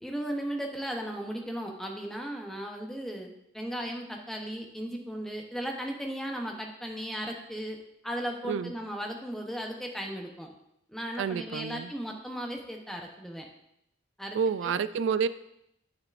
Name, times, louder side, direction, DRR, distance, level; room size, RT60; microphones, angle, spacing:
voice 1, 0.0-7.8 8.0-10.5 10.9-13.5 14.2-14.4 14.6-14.7, equal, ahead, 1 dB, 0.7 m, -36 dB
voice 2, 11.2-11.9 14.3-15.3, right 6 dB, 80° right, 15 dB, 0.3 m, -29 dB
8.9 x 6.4 x 2.5 m, 0.79 s
head